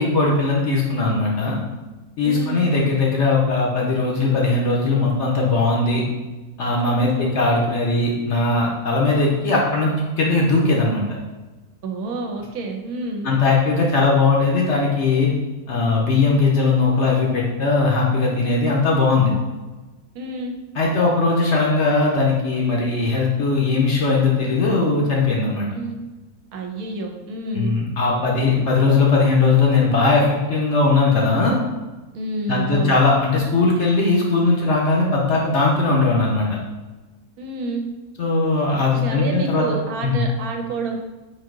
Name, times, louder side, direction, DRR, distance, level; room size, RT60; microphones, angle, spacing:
voice 1, 0.0-1.6 2.2-6.0 6.6-11.0 13.2-15.3 15.7-19.3 20.8-25.7 27.5-31.5 32.5-36.6 38.2-39.6 40.0-40.2, left 3 dB, 60° left, -2 dB, 0.8 m, -19 dB
voice 2, 2.2-2.6 6.9-7.3 11.8-13.3 20.1-20.5 25.7-26.0 26.5-27.8 32.1-33.0 37.4-37.8 38.9-41.0, right 3 dB, 75° right, 3 dB, 1.0 m, -29 dB
3.9 x 2.6 x 3.7 m, 1.2 s
omnidirectional pair, 1.6 m